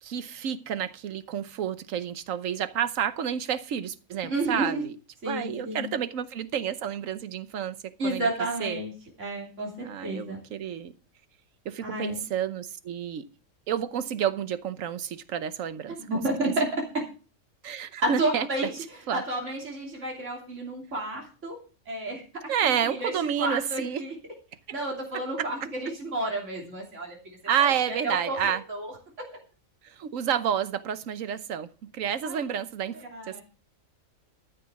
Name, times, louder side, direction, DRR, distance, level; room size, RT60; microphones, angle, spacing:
voice 1, 0.0-4.9 5.2-8.8 9.8-10.9 11.6-13.2 13.7-16.0 17.6-18.5 19.1-19.2 22.5-24.0 24.7-24.8 25.1-25.5 27.5-28.6 29.8-33.4, right 8 dB, 85° right, 1.2 m, -30 dB
voice 2, 4.2-4.8 5.2-5.9 8.0-8.9 9.2-10.4 11.8-12.2 16.1-16.8 18.0-18.7 19.1-21.6 21.9-22.2 22.6-23.1 23.4-24.1 24.7-27.2 27.6-28.9 32.2-32.4 33.1-33.4, right 2 dB, 65° right, 3.3 m, -31 dB
13.5 x 6.6 x 5.9 m
omnidirectional pair, 1.4 m